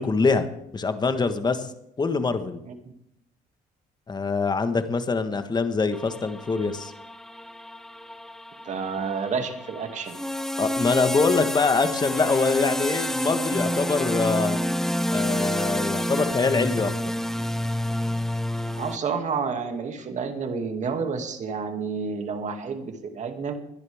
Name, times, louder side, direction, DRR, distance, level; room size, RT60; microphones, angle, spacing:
voice 1, 0.0-1.7 2.0-2.6 4.1-6.9 10.6-14.6 15.1-17.1, left 4 dB, 25° left, 9 dB, 1.4 m, -24 dB
sound 1, 5.9-19.0, left 1 dB, ahead, 1.0 m, -29 dB
voice 2, 8.6-10.2 18.8-23.5, right 5 dB, 45° right, 5 dB, 2.4 m, -30 dB
21.5 x 11.0 x 3.6 m, 0.77 s
cardioid pair, 110°, 17 cm